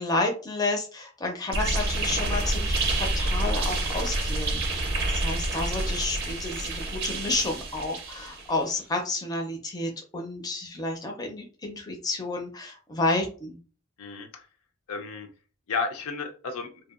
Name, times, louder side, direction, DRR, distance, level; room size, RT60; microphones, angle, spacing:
voice 1, 0.0-4.9 5.1-13.6, left 2 dB, 20° left, 2 dB, 0.4 m, -30 dB
sound 1, 1.5-8.6, right 2 dB, 50° right, 0.5 m, -28 dB
voice 2, 14.0-14.4 14.9-15.3 15.7-16.7, left 4 dB, 75° left, 5 dB, 0.5 m, -33 dB
2.7 x 2.2 x 2.3 m, 0.38 s
head